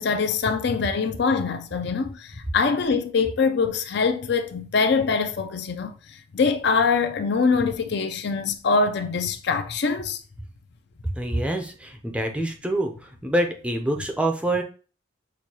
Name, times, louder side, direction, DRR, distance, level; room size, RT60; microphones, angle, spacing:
voice 1, 0.0-10.2, left 4 dB, 55° left, 0.4 m, -24 dB
voice 2, 11.1-12.9 13.2-14.6, right 1 dB, 5° right, 0.5 m, -25 dB
6.3 x 2.3 x 2.8 m
head